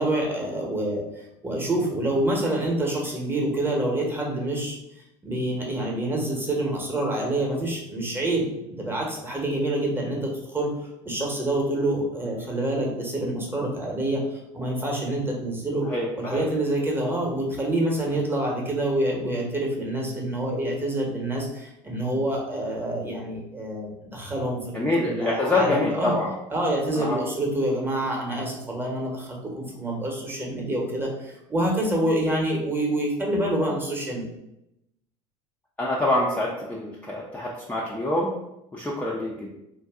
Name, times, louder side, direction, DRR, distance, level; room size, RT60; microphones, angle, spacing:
voice 1, 0.0-4.8 5.2-10.7 11.0-15.9 16.2-26.2 26.5-34.3, right 1 dB, 15° right, -1 dB, 0.9 m, -27 dB
voice 2, 15.9-16.4 24.7-26.3 27.0-27.2 35.8-38.3 38.7-39.5, left 2 dB, 10° left, -5 dB, 0.5 m, -26 dB
2.6 x 2.2 x 3.5 m, 0.86 s
hypercardioid pair, 85°, 16 cm